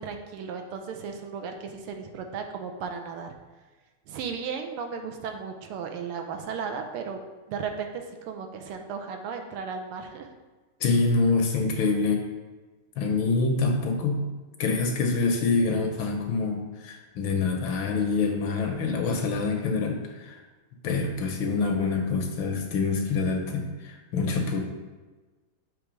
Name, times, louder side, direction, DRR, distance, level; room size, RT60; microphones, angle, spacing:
voice 1, 0.0-3.3 4.1-7.2 7.5-10.3, right 6 dB, 85° right, 4 dB, 1.6 m, -35 dB
voice 2, 10.8-12.2 13.0-14.3 14.6-20.4 20.8-24.6, left 4 dB, 75° left, 3 dB, 1.3 m, -26 dB
6.7 x 3.1 x 4.9 m, 1.3 s
omnidirectional pair, 2.4 m